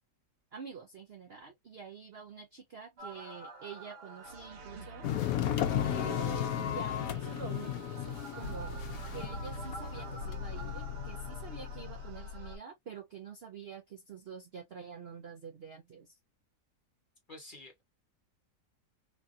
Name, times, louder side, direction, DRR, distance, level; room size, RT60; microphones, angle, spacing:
voice 1, 0.5-5.1 5.8-8.8 9.1-16.2, right 6 dB, 55° right, 0.7 m, -47 dB
sound 1, 3.0-12.6, left 1 dB, 80° right, 1.6 m, -44 dB
sound 2, 5.0-11.9, left 11 dB, 70° left, 0.9 m, -35 dB
voice 2, 17.3-17.8, left 2 dB, 35° left, 1.1 m, -49 dB
3.4 x 2.6 x 2.4 m
omnidirectional pair, 1.8 m